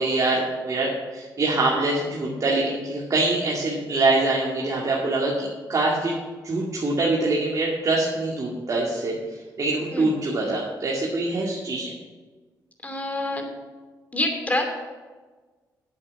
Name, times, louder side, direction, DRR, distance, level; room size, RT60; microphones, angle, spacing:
voice 1, 0.0-6.2 6.4-11.9, right 2 dB, 45° right, -4 dB, 2.3 m, -24 dB
voice 2, 12.8-13.5 14.1-14.6, left 1 dB, 20° left, 3 dB, 2.7 m, -26 dB
8.4 x 7.8 x 7.1 m, 1.3 s
cardioid pair, 65°, 8 cm